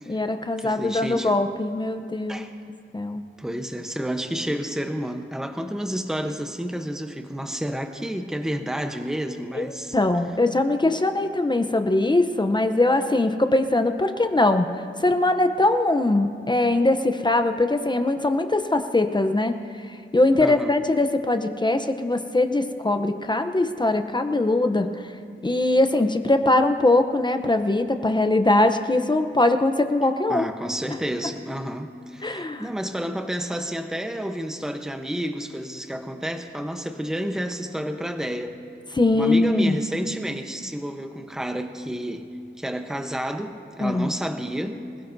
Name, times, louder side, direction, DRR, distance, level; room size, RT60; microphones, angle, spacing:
voice 1, 0.1-2.5 2.9-3.2 9.5-14.7 15.0-24.9 25.4-30.5 32.2-32.7 38.9-39.8 43.8-44.1, left 2 dB, 20° left, 7 dB, 0.7 m, -21 dB
voice 2, 0.6-1.4 2.3-2.5 3.4-10.0 20.4-20.7 30.3-38.6 39.1-42.3 42.6-44.8, equal, 5° right, 5 dB, 0.9 m, -30 dB
26.5 x 16.5 x 2.7 m, 2.5 s
wide cardioid pair, 110°, 20 cm